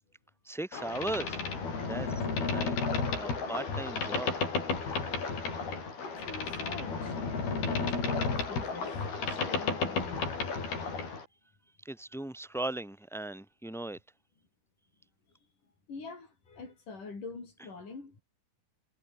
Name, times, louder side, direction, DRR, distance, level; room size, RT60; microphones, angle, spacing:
voice 1, 0.4-1.4 1.8-2.2 2.5-2.8 3.1-4.3 11.8-14.0, right 2 dB, ahead, 4.2 m, -37 dB
Boat Water vehicle, 0.7-11.3, left 4 dB, 75° left, 8.8 m, -33 dB
voice 2, 3.4-3.7 6.0-7.1 7.7-8.9 9.3-10.4 15.9-18.2, left 4 dB, 55° left, 8.5 m, -45 dB
omnidirectional pair, 4.4 m